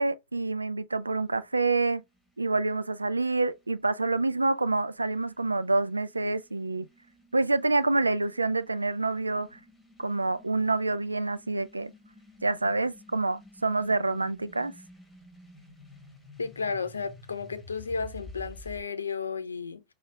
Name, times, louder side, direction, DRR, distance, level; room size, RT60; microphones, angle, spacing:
voice 1, 0.0-2.0 2.4-6.9 7.3-9.6 10.0-11.9 12.4-14.7, right 3 dB, 85° right, 0.3 m, -27 dB
sound 1, 1.0-18.8, left 1 dB, 5° left, 1.8 m, -53 dB
voice 2, 16.4-19.8, left 5 dB, 80° left, 0.6 m, -33 dB
5.6 x 2.3 x 3.3 m
figure-of-eight pair, 95°, 0 cm